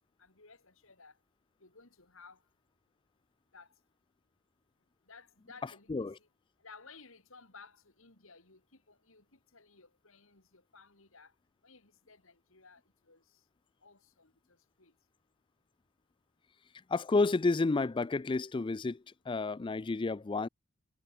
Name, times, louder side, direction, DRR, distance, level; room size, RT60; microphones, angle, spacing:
voice 1, 0.2-1.2 1.6-2.4 3.5-3.7 5.1-6.3 6.6-11.3 11.6-13.2 13.8-14.9, left 4 dB, 65° left, 3.9 m, -57 dB
voice 2, 16.9-20.5, left 3 dB, 20° left, 0.4 m, -30 dB
head